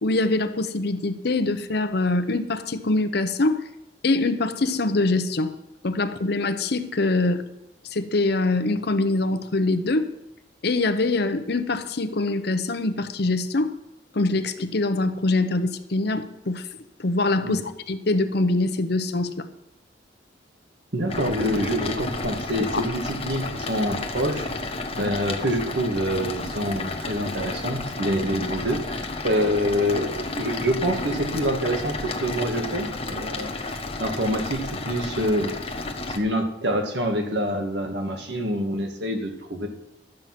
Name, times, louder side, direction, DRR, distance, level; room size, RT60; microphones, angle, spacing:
voice 1, 0.0-3.6 4.0-5.5 5.8-7.4 7.9-10.1 10.6-13.7 14.1-16.7 17.0-17.6 17.9-19.5 22.7-22.8, left 2 dB, 65° left, 11 dB, 0.8 m, -24 dB
voice 2, 20.9-24.5 25.0-35.5 36.1-39.7, equal, 70° right, 4 dB, 1.6 m, -26 dB
sound 1, 21.1-36.2, left 2 dB, 35° left, 1.1 m, -32 dB
12.0 x 7.8 x 5.9 m, 0.89 s
head